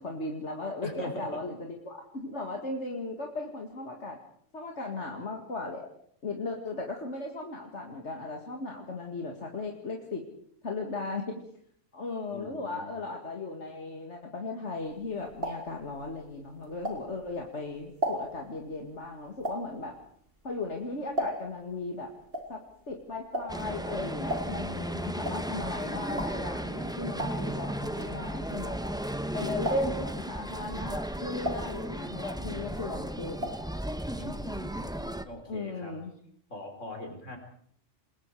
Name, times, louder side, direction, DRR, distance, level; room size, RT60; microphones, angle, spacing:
voice 1, 0.0-4.2 4.5-5.9 6.2-10.2 10.6-11.4 11.9-19.9 20.4-22.1 22.5-28.8 29.3-33.5 35.5-36.1, left 2 dB, 70° left, 2 dB, 2.5 m, -36 dB
voice 2, 0.8-1.4 12.3-12.9 34.2-36.0 36.5-37.4, left 1 dB, 85° left, 4 dB, 4.8 m, -41 dB
sound 1, 14.9-17.4 17.8-21.7 22.0-29.3 29.6-30.2 30.6-32.4 32.6-33.7 34.0-34.1 34.3-34.4, equal, 50° right, 4.6 m, -36 dB
sound 2, 23.5-35.2, right 1 dB, 5° right, 0.9 m, -35 dB
28.5 x 21.0 x 4.9 m, 0.64 s
omnidirectional pair, 1.2 m